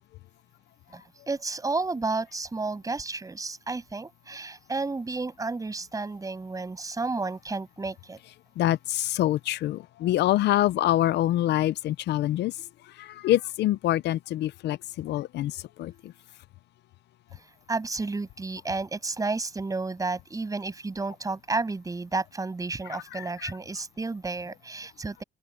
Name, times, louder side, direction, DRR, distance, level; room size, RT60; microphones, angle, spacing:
voice 1, 0.9-8.2 17.3-17.4 17.7-25.2, right 3 dB, 20° right, 7.2 m, -32 dB
voice 2, 8.6-12.5 13.0-15.5 15.8-15.9 23.1-23.5, left 14 dB, 75° left, 0.6 m, -25 dB
open air
cardioid pair, 125°, 18 cm